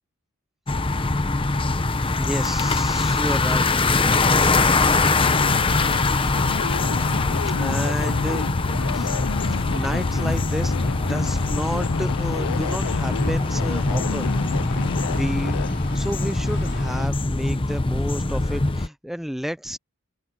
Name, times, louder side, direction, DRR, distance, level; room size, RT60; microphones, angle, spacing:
sound 1, 0.7-18.9, left 3 dB, 25° left, 0.8 m, -23 dB
sound 2, 1.3-17.1, left 3 dB, 50° left, 4.0 m, -41 dB
voice 1, 2.2-3.9 4.3-4.6 7.5-8.4 8.9-9.2 9.5-10.7 11.1-14.3 15.1-15.6 15.9-19.8, equal, ahead, 0.5 m, -31 dB
sound 3, 5.2-15.7, left 7 dB, 90° left, 0.4 m, -31 dB
open air
head